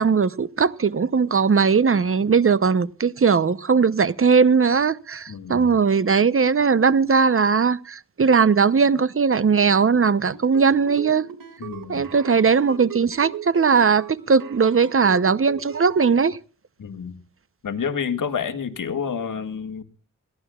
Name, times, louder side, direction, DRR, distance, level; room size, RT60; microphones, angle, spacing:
voice 1, 0.0-11.3 11.9-16.4, right 5 dB, 40° right, 0.8 m, -19 dB
voice 2, 5.3-5.7 11.6-12.0 16.8-17.2 17.6-19.8, left 6 dB, 70° left, 1.9 m, -29 dB
sound 1, 10.2-16.1, right 10 dB, 80° right, 2.3 m, -38 dB
21.5 x 16.0 x 2.4 m
cardioid pair, 65°, 33 cm